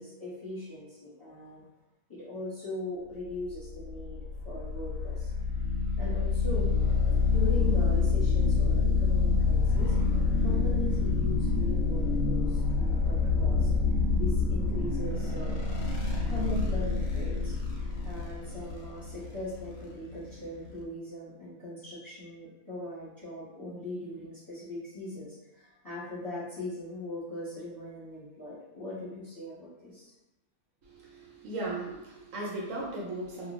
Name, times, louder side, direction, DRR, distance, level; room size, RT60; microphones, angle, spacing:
voice 1, 0.0-1.6 2.1-5.3 6.0-6.8 7.3-13.7 14.1-15.6 16.3-17.6 18.0-30.1, left 1 dB, 15° left, -9 dB, 1.0 m, -40 dB
sound 1, 3.4-20.8, left 4 dB, 75° left, 0.9 m, -27 dB
voice 2, 30.8-33.5, right 2 dB, 70° right, -3 dB, 0.9 m, -37 dB
2.3 x 2.2 x 3.0 m, 0.97 s
omnidirectional pair, 1.5 m